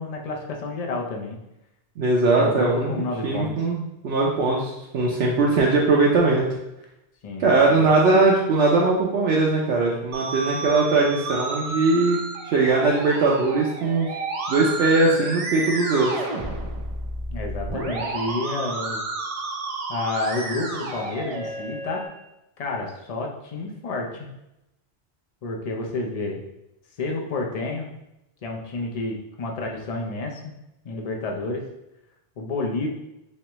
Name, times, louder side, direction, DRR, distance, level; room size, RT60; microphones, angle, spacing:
voice 1, 0.0-1.4 2.4-3.5 7.2-7.8 17.3-19.0 19.9-22.0 22.6-24.3 25.4-26.4 27.0-27.9 28.4-30.5 30.8-31.6 32.4-32.9, left 2 dB, 45° left, 0 dB, 0.6 m, -30 dB
voice 2, 2.0-2.9 3.2-6.4 7.4-12.2 12.4-14.1 14.5-16.1, right 3 dB, 80° right, -3 dB, 0.8 m, -20 dB
Musical instrument, 10.1-22.1, right 3 dB, 45° right, 0.5 m, -31 dB
3.4 x 3.2 x 3.0 m, 0.89 s
omnidirectional pair, 1.1 m